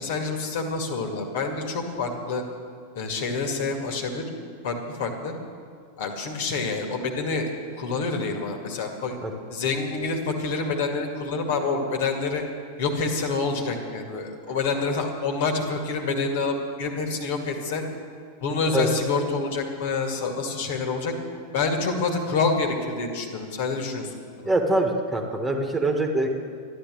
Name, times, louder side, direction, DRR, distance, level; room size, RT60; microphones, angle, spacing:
voice 1, 0.0-2.4 3.0-4.2 4.6-5.3 6.0-7.5 7.8-9.2 9.5-12.4 12.8-17.8 18.4-21.1 21.5-24.1 24.4-24.5, left 4 dB, 55° left, 3 dB, 2.1 m, -27 dB
voice 2, 24.4-26.3, right 2 dB, 10° right, 3 dB, 1.7 m, -24 dB
13.0 x 11.0 x 7.7 m, 2.3 s
figure-of-eight pair, 90°, 0 cm